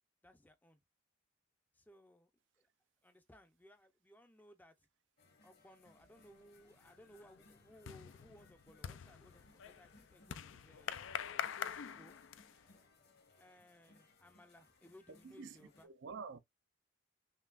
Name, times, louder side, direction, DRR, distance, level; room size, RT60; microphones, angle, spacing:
voice 1, 0.2-0.8 1.7-2.3 2.6-2.7 3.0-4.9 5.4-11.0 11.6-12.2 13.4-15.9, equal, 10° left, 0.5 m, -62 dB
sound 1, 5.2-15.9, left 3 dB, 50° left, 1.1 m, -67 dB
sound 2, 6.2-6.6 6.9-12.7, left 8 dB, 75° left, 0.4 m, -45 dB
voice 2, 15.1-16.4, right 5 dB, 65° right, 0.5 m, -49 dB
5.6 x 2.3 x 2.4 m
head